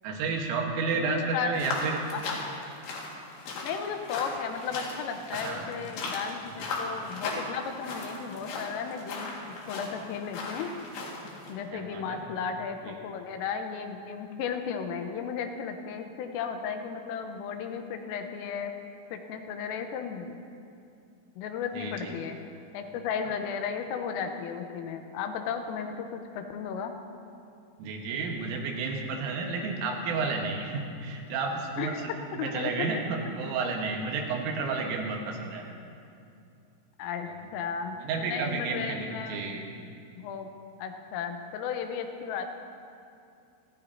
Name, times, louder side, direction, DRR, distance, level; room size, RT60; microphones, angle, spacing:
voice 1, 0.0-2.0 5.3-5.7 11.7-12.2 12.8-13.0 21.8-22.2 27.8-32.1 32.4-35.7 38.0-39.6, right 4 dB, 75° right, 0 dB, 3.9 m, -31 dB
voice 2, 0.9-2.7 3.6-10.7 11.3-18.7 19.1-20.4 21.4-22.4 22.7-26.9 31.8-32.0 32.4-32.9 37.0-39.4 40.2-40.5 40.8-42.5, left 6 dB, 85° left, 5 dB, 3.5 m, -35 dB
sound 1, 1.5-11.5, left 3 dB, 65° left, 3.9 m, -37 dB
29.5 x 14.0 x 2.8 m, 2.5 s
omnidirectional pair, 5.9 m